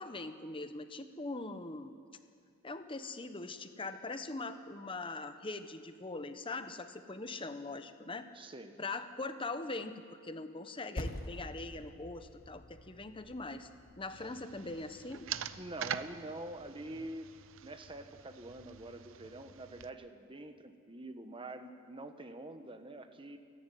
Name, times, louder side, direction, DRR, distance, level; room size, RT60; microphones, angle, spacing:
voice 1, 0.0-1.9 2.6-8.3 8.8-13.7 14.0-15.3, left 3 dB, 25° left, 9 dB, 1.0 m, -42 dB
voice 2, 8.3-8.8 15.6-17.3 17.6-23.4, right 2 dB, 25° right, 8 dB, 1.2 m, -46 dB
Percussion, 11.0-15.8, left 1 dB, 50° left, 1.6 m, -47 dB
sound 1, 14.1-19.9, right 8 dB, 80° right, 0.7 m, -45 dB
28.0 x 11.0 x 9.4 m, 2.2 s
head